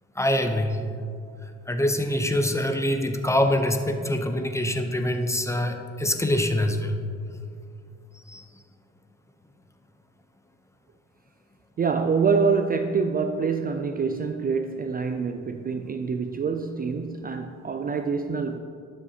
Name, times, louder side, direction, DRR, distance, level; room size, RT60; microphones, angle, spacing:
voice 1, 0.2-0.8 1.7-7.0 8.1-8.4, left 1 dB, 10° left, 0.7 m, -25 dB
voice 2, 11.8-18.6, right 5 dB, 30° right, 0.4 m, -26 dB
12.0 x 6.9 x 2.8 m
cardioid pair, 90°, 30 cm